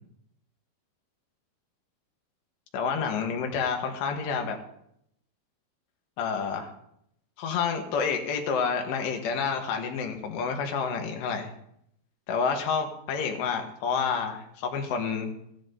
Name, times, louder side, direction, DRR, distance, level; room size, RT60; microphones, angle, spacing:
voice 1, 2.7-4.6 6.2-6.7 7.4-11.5 12.3-15.3, left 6 dB, 85° left, 4 dB, 3.5 m, -29 dB
16.0 x 14.0 x 2.7 m, 0.74 s
omnidirectional pair, 4.9 m